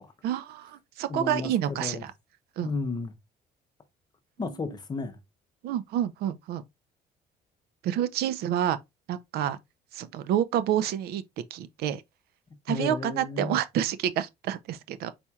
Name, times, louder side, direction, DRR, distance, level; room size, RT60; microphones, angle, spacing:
voice 1, 0.2-2.1 2.6-2.7 4.4-4.5 5.6-6.6 7.8-8.8 9.1-9.6 9.9-11.2 11.5-12.0 12.7-15.1, right 10 dB, 75° right, 0.6 m, -28 dB
voice 2, 1.1-2.0 2.6-3.1 4.4-5.2 12.7-13.6, left 4 dB, 25° left, 0.8 m, -33 dB
4.3 x 4.2 x 2.3 m
cardioid pair, 135°, 16 cm